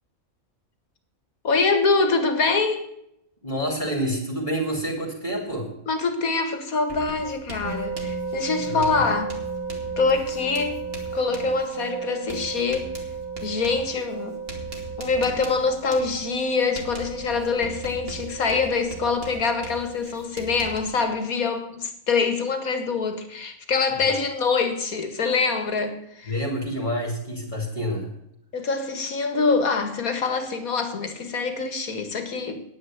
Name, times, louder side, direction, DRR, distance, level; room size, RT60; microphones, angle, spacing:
voice 1, 1.4-2.9 5.9-9.4 10.0-10.8 11.1-12.9 13.4-14.4 15.0-26.3 28.5-32.6, left 4 dB, 90° left, 8 dB, 2.3 m, -25 dB
voice 2, 3.4-5.7 8.6-9.0 23.9-24.1 26.3-28.1, equal, 35° left, -2 dB, 3.1 m, -28 dB
Writing, 6.9-21.0, right 2 dB, 45° right, 2.8 m, -41 dB
sound 1, 7.6-20.0, right 5 dB, 80° right, 3.1 m, -34 dB
10.0 x 9.8 x 7.2 m, 0.78 s
omnidirectional pair, 1.4 m